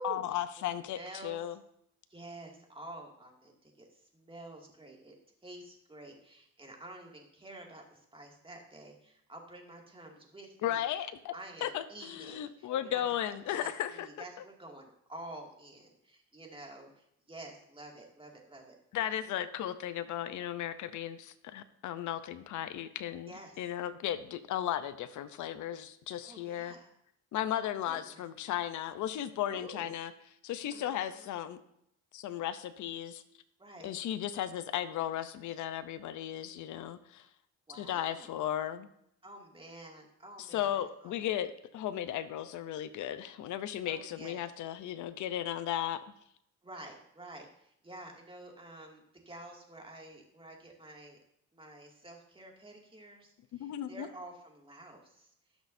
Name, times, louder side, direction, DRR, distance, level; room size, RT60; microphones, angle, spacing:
voice 1, 0.0-1.6 10.6-11.3 11.6-14.1 18.9-26.7 27.3-30.1 30.4-31.6 32.1-33.2 33.8-37.3 37.7-38.9 40.4-46.0 53.6-54.1, left 11 dB, 75° left, 11 dB, 0.7 m, -35 dB
voice 2, 0.9-1.4 2.1-5.1 5.4-10.8 11.3-18.7 23.3-23.6 26.2-26.9 27.8-28.3 29.5-29.9 30.7-31.3 33.6-33.9 37.7-38.4 39.2-41.1 43.8-44.4 46.6-51.2 51.5-55.3, right 2 dB, 15° right, 0 dB, 2.3 m, -49 dB
16.5 x 6.3 x 2.7 m, 0.74 s
cardioid pair, 90°, 30 cm